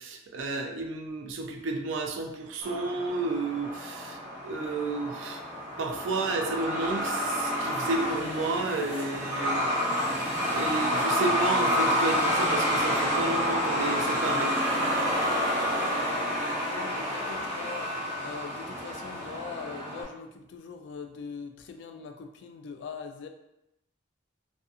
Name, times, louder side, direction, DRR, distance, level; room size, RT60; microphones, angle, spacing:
voice 1, 0.0-4.2 4.4-5.4 5.8-9.7 10.1-14.5, right 3 dB, 85° right, 3 dB, 0.4 m, -32 dB
Truck, 2.6-20.0, equal, 10° right, 0.8 m, -29 dB
voice 2, 16.5-23.3, left 5 dB, 65° left, 5 dB, 0.3 m, -41 dB
2.6 x 2.4 x 2.4 m, 0.86 s
head